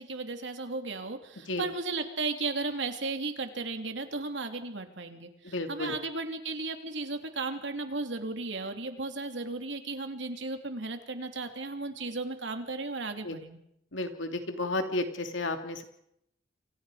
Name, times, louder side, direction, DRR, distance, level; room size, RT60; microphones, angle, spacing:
voice 1, 0.0-13.6, right 3 dB, 70° right, 6 dB, 3.1 m, -35 dB
voice 2, 5.4-5.9 13.2-13.4 13.9-15.8, left 2 dB, 75° left, 6 dB, 3.0 m, -32 dB
29.0 x 25.5 x 5.1 m, 0.78 s
head